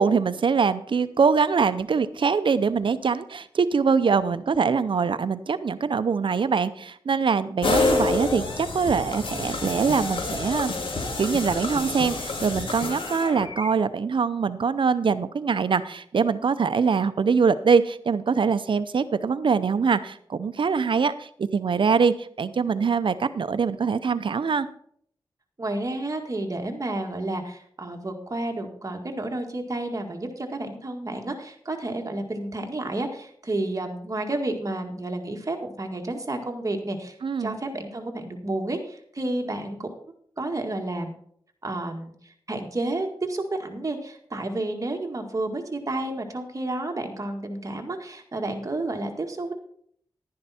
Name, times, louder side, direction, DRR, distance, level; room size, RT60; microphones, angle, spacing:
voice 1, 0.0-10.7 11.2-24.7 37.2-37.6, right 5 dB, 70° right, 13 dB, 0.6 m, -23 dB
sound 1, 7.6-13.6, left 2 dB, 80° left, 2.2 m, -28 dB
voice 2, 25.6-39.9 40.4-41.2 41.6-49.5, right 2 dB, 40° right, 3 dB, 1.9 m, -31 dB
11.5 x 10.5 x 4.3 m, 0.63 s
wide cardioid pair, 90°, 9 cm